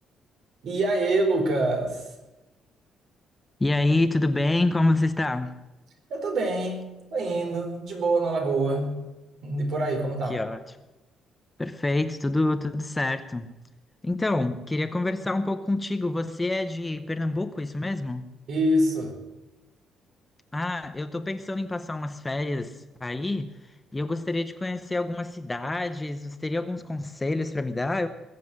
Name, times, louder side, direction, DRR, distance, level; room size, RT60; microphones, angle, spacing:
voice 1, 0.6-2.1 6.1-9.0 9.4-10.4 18.5-19.1, right 2 dB, 65° right, 4.6 m, -25 dB
voice 2, 3.6-5.6 10.3-10.6 11.6-13.5 14.0-18.3 20.5-28.1, left 2 dB, 15° left, 0.8 m, -27 dB
20.5 x 7.8 x 7.7 m
cardioid pair, 140°, 0 cm